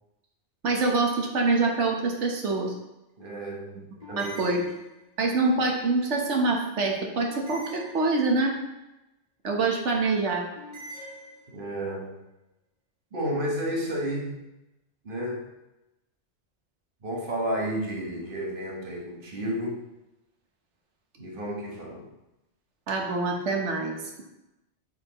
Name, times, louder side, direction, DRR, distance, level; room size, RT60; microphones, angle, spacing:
voice 1, 0.6-2.7 4.2-4.6 5.2-8.6 9.4-10.5 22.9-24.2, right 3 dB, 85° right, 1 dB, 1.4 m, -25 dB
sound 1, 1.5-2.1 4.0-5.3 7.3-8.6 10.5-11.8, equal, 40° left, 1.8 m, -45 dB
voice 2, 3.2-4.5 11.5-12.2 13.1-14.4 15.0-15.5 17.0-19.8 21.2-22.1, equal, 50° right, 0 dB, 1.3 m, -32 dB
8.4 x 4.3 x 3.0 m, 0.95 s
omnidirectional pair, 1.2 m